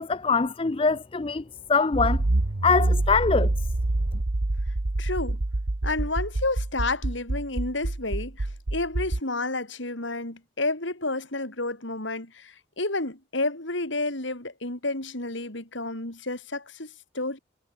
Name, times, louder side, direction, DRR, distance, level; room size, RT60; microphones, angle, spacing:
voice 1, 0.0-1.4 1.7-2.2 2.6-3.5, left 4 dB, 25° left, 0.5 m, -23 dB
Accelerating revving vroom, 1.9-9.2, right 2 dB, 80° right, 1.2 m, -26 dB
voice 2, 5.0-5.4 5.8-17.4, left 2 dB, 70° left, 4.3 m, -30 dB
head